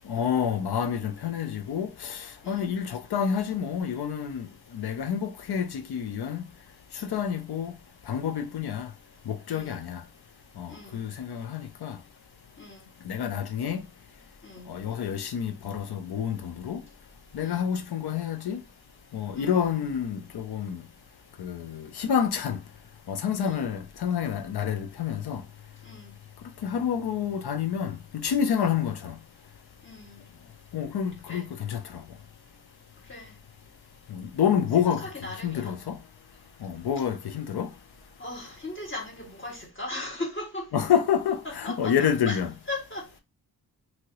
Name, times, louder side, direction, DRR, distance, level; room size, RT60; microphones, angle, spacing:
voice 1, 0.1-4.5 4.7-6.4 6.9-7.7 8.1-8.9 9.3-10.0 10.6-12.0 13.0-13.8 14.7-16.8 17.3-18.6 19.1-20.8 21.4-22.6 23.1-25.4 26.6-29.1 30.7-32.0 34.1-35.1 35.4-36.0 36.6-37.7 40.7-42.5, left 8 dB, 85° left, 0.6 m, -28 dB
voice 2, 9.5-9.8 10.7-11.0 12.6-12.9 14.4-14.7 17.4-17.7 19.3-20.0 23.4-23.7 25.8-26.1 28.5-28.8 29.8-30.2 31.3-31.4 33.1-33.3 34.8-35.7 38.2-40.8 41.4-42.4 42.7-43.1, left 2 dB, 30° left, 1.6 m, -38 dB
2.8 x 2.8 x 2.9 m
wide cardioid pair, 75°, 38 cm